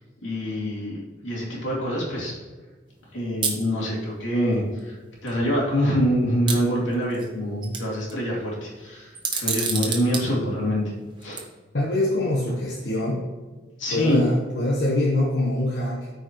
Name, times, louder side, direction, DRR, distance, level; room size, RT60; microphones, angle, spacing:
voice 1, 0.2-2.4 3.1-10.8 11.2-11.4 13.8-14.2, equal, 85° left, -3 dB, 2.7 m, -25 dB
sound 1, 3.4-3.6 4.8-4.9 5.3-5.4 6.5-7.3 7.6-8.1 9.2-10.2 11.2-11.4, right 5 dB, 25° right, 1.0 m, -27 dB
voice 2, 11.7-13.3 13.9-16.1, left 1 dB, 65° left, -3 dB, 1.1 m, -24 dB
13.5 x 4.9 x 3.1 m, 1.3 s
head